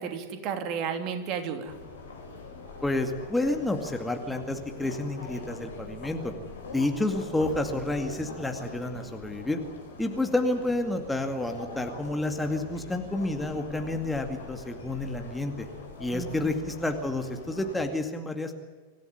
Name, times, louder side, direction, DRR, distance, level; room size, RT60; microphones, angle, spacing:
voice 1, 0.0-1.7 16.1-16.6, right 6 dB, 40° right, 6 dB, 3.1 m, -33 dB
sound 1, 1.7-17.9, left 3 dB, 65° left, 5.5 m, -43 dB
voice 2, 2.8-6.3 6.7-9.6 10.0-15.7 16.0-18.5, left 2 dB, 5° left, 5 dB, 2.2 m, -30 dB
25.5 x 15.5 x 9.6 m, 1.5 s
figure-of-eight pair, 90°, 0 cm